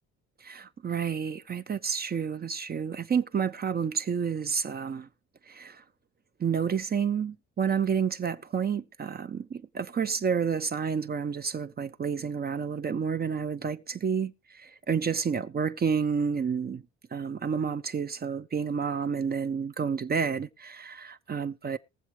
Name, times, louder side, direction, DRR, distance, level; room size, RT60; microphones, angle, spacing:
voice 1, 0.4-5.1 5.5-5.8 6.4-16.8 17.1-21.8, right 6 dB, 30° right, 0.5 m, -30 dB
20.5 x 7.3 x 3.2 m
cardioid pair, 90°, 30 cm